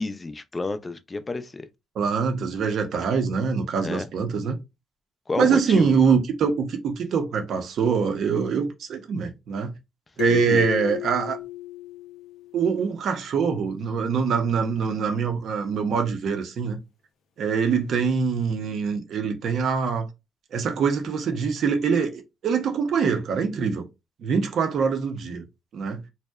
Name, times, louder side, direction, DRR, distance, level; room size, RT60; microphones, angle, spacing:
voice 1, 0.0-1.7 3.8-4.1 5.3-5.9 10.3-10.7, left 3 dB, 25° left, 0.3 m, -30 dB
voice 2, 2.0-4.6 5.4-9.7 10.2-11.4 12.5-16.8 17.4-20.1 20.5-23.8 24.2-25.4 25.7-26.0, right 6 dB, 65° right, 0.6 m, -24 dB
sound 1, 10.2-12.7, left 15 dB, 85° left, 0.5 m, -32 dB
2.6 x 2.1 x 2.2 m
cardioid pair, 90°, 0 cm